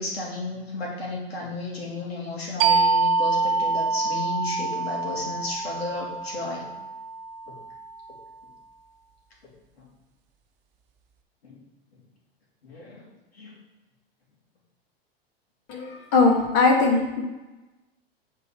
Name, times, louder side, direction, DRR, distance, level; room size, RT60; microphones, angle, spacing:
voice 1, 0.0-6.7 7.5-7.6 9.8-9.9 11.4-11.6 12.6-13.1 13.3-13.5, left 2 dB, 85° left, -3 dB, 2.6 m, -33 dB
sound 1, 2.6-7.9, right 4 dB, 65° right, 0.9 m, -25 dB
voice 2, 15.7-17.2, left 3 dB, 50° left, 0 dB, 2.5 m, -20 dB
8.2 x 4.5 x 4.9 m, 1.1 s
hypercardioid pair, 100°, 30 cm